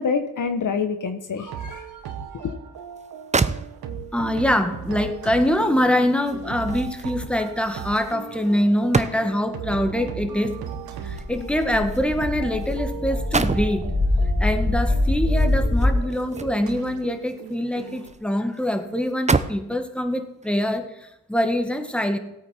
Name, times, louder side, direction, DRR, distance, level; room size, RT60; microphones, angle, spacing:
voice 1, 0.0-1.8 2.3-2.6, left 5 dB, 60° left, 8 dB, 1.2 m, -26 dB
sound 1, 1.5-18.1, right 7 dB, 85° right, 1.2 m, -37 dB
sound 2, 3.0-3.1 3.3-4.2 5.6-9.6 10.7-12.8 13.1-13.8 15.3-16.9 17.3-18.2 18.5-18.6 19.1-19.7 20.4-20.6, right 4 dB, 20° right, 0.7 m, -29 dB
voice 2, 4.1-10.6 11.0-13.9 14.4-22.2, left 1 dB, 5° left, 7 dB, 1.8 m, -24 dB
sound 3, 11.0-15.9, left 2 dB, 20° left, 2.9 m, -23 dB
16.5 x 8.7 x 4.4 m, 0.86 s
supercardioid pair, 50°, 35 cm